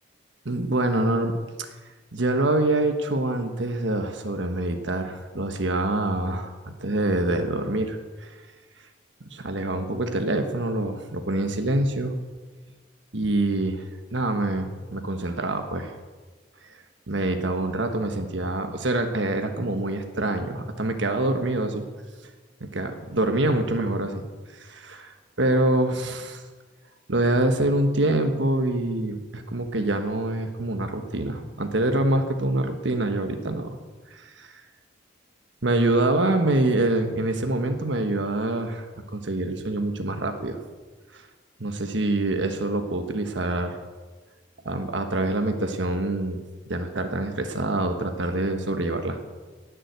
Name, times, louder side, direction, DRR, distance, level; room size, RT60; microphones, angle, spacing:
voice 1, 0.4-1.7 2.1-8.4 9.3-12.1 13.1-16.0 16.6-16.8 17.1-21.8 22.7-24.2 24.5-26.4 27.1-33.7 34.1-34.6 35.6-40.6 41.1-41.3 41.6-43.8 44.6-46.4 46.7-49.2, right 2 dB, 75° right, 6 dB, 1.3 m, -25 dB
18.5 x 7.6 x 8.0 m, 1.3 s
head